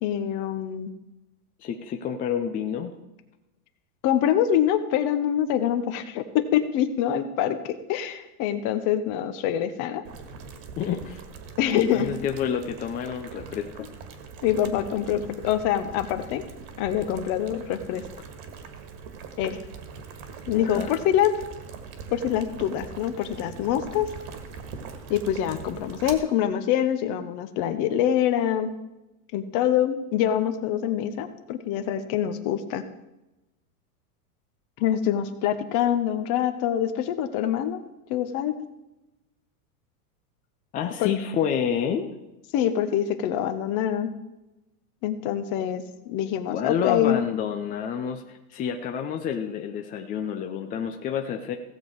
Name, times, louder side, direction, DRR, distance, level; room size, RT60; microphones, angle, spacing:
voice 1, 0.0-0.9 4.0-10.0 11.6-12.1 14.4-16.4 16.8-18.0 19.4-19.6 20.5-21.3 22.1-24.1 25.1-28.7 29.3-32.8 34.8-37.8 38.1-38.6 41.0-41.1 42.5-44.1 45.0-47.2, left 10 dB, 40° left, 10 dB, 1.0 m, -25 dB
voice 2, 1.6-2.9 10.8-11.2 11.7-13.9 20.5-20.9 40.7-42.1 46.5-51.6, left 8 dB, 20° left, 4 dB, 0.4 m, -29 dB
Boiling, 10.0-26.1, right 5 dB, 50° right, 1.8 m, -42 dB
16.0 x 7.1 x 4.7 m, 0.98 s
supercardioid pair, 135°, 46 cm